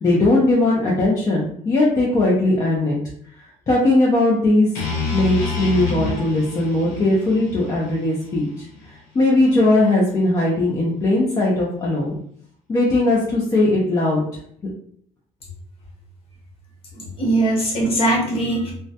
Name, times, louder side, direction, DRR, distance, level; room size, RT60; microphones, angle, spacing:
voice 1, 0.0-3.0 3.7-4.7 5.1-12.2 12.7-14.2, left 2 dB, 25° left, -4 dB, 0.4 m, -19 dB
sound 1, 4.7-8.9, left 4 dB, 75° left, 0.7 m, -28 dB
voice 2, 16.9-18.7, right 2 dB, 45° left, -3 dB, 0.9 m, -20 dB
2.2 x 2.1 x 2.7 m, 0.64 s
cardioid pair, 140°, 13 cm